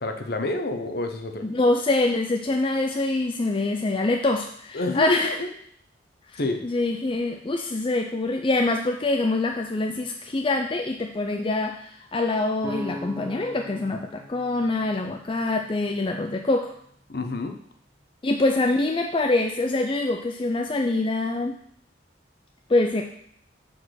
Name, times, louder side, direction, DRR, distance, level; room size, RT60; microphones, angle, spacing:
voice 1, 0.0-1.4 4.7-5.5 6.4-6.6 17.1-17.5, left 2 dB, 55° left, 5 dB, 0.9 m, -28 dB
voice 2, 1.4-5.3 6.3-16.7 18.2-21.6 22.7-23.1, left 2 dB, 30° left, 3 dB, 0.5 m, -25 dB
sound 1, 12.6-16.4, equal, 20° right, 0.6 m, -40 dB
6.4 x 4.8 x 6.4 m, 0.66 s
head